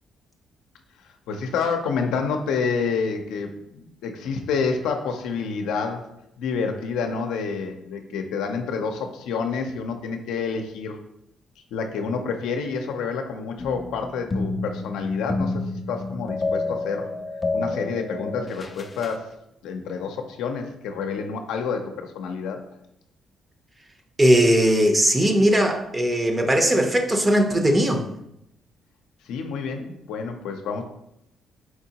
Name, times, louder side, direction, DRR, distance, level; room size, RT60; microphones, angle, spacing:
voice 1, 1.3-6.1 6.4-11.0 11.7-17.1 17.5-19.3 19.6-22.6 29.3-30.8, left 5 dB, 90° left, 4 dB, 0.5 m, -28 dB
sound 1, 13.6-19.2, left 3 dB, 30° left, 0.4 m, -29 dB
voice 2, 24.2-28.0, equal, 20° right, 5 dB, 0.7 m, -19 dB
4.6 x 3.6 x 2.8 m, 0.81 s
cardioid pair, 90°, 0 cm